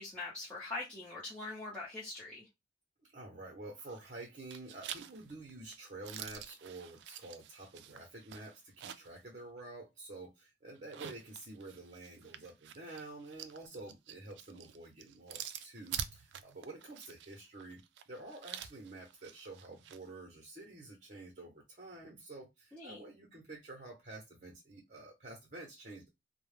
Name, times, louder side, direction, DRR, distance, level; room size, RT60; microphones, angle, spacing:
voice 1, 0.0-2.5 22.7-23.0, left 2 dB, 5° left, 0.8 m, -43 dB
voice 2, 3.1-26.1, right 2 dB, 45° right, 0.7 m, -49 dB
sound 1, 3.8-4.2 4.5-9.2 9.6-9.7 10.7-20.0, right 9 dB, 75° right, 0.3 m, -47 dB
2.2 x 2.1 x 3.2 m
head